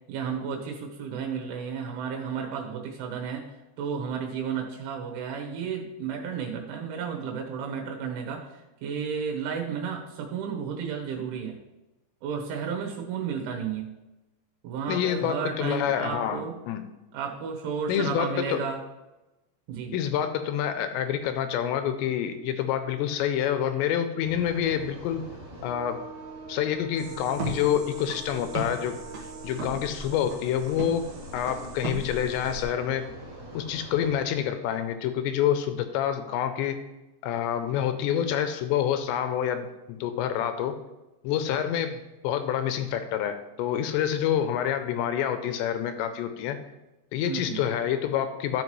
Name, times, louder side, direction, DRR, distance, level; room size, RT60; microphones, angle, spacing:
voice 1, 0.1-3.5 3.8-11.6 12.2-13.9 14.6-16.6 17.1-18.8 19.7-20.0 47.2-47.6, right 6 dB, 90° right, 1 dB, 3.6 m, -33 dB
voice 2, 14.9-16.9 17.9-18.7 19.9-25.2 25.6-26.1 26.5-29.0 29.4-33.1 33.5-36.8 37.2-40.8 41.2-46.6 47.1-48.6, left 9 dB, 85° left, 9 dB, 2.7 m, -27 dB
sound 1, 24.2-34.2, right 2 dB, 20° right, 1.6 m, -43 dB
sound 2, 27.0-32.6, right 2 dB, 70° right, 1.6 m, -37 dB
13.0 x 5.8 x 3.1 m, 1.0 s
omnidirectional pair, 5.4 m